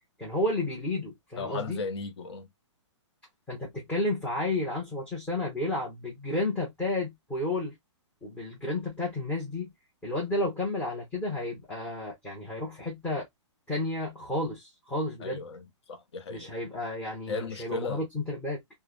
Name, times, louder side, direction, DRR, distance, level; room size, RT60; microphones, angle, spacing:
voice 1, 0.2-1.8 3.5-7.7 8.2-9.7 10.0-13.3 13.7-15.4 16.3-18.6, left 1 dB, 10° left, 1.1 m, -32 dB
voice 2, 1.4-2.5 15.2-16.5 17.3-18.0, left 4 dB, 65° left, 0.9 m, -36 dB
3.3 x 2.2 x 2.4 m
hypercardioid pair, 160°, 16 cm